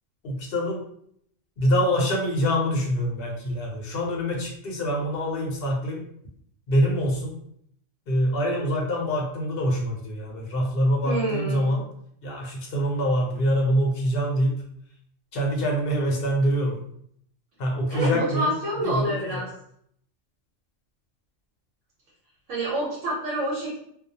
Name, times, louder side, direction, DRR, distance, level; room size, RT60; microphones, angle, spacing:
voice 1, 0.2-0.8 1.6-6.0 6.7-7.3 8.1-11.8 12.2-14.5 15.3-16.8 17.6-18.5 18.8-19.4, equal, 55° left, -1 dB, 0.8 m, -25 dB
voice 2, 11.0-11.8 17.9-19.5 22.5-23.8, right 1 dB, 75° right, -6 dB, 1.1 m, -27 dB
2.5 x 2.0 x 2.7 m, 0.68 s
omnidirectional pair, 1.3 m